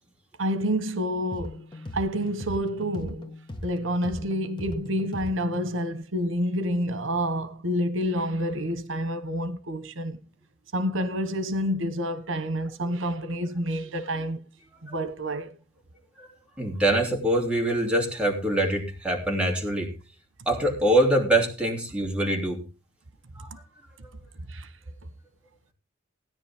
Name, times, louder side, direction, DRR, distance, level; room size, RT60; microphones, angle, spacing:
voice 1, 0.4-1.6 1.9-3.3 3.6-10.2 10.7-14.4 14.8-15.5 23.5-23.6 24.5-24.7, equal, 90° right, 1.2 m, -28 dB
sound 1, 1.3-5.8, left 1 dB, 25° left, 1.7 m, -39 dB
voice 2, 16.6-19.9 20.5-22.6 23.3-23.6, right 1 dB, 5° right, 3.0 m, -24 dB
17.0 x 10.0 x 3.6 m
head